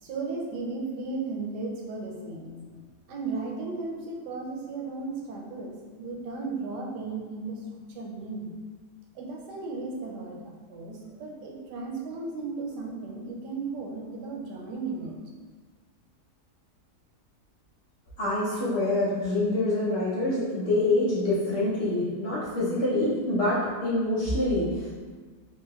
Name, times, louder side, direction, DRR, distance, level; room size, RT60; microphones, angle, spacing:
voice 1, 0.0-7.6 7.9-8.5 9.1-15.2, right 3 dB, 90° right, -1 dB, 1.2 m, -35 dB
voice 2, 18.2-25.0, left 2 dB, 55° left, -8 dB, 0.7 m, -26 dB
3.3 x 3.1 x 2.3 m, 1.4 s
omnidirectional pair, 1.7 m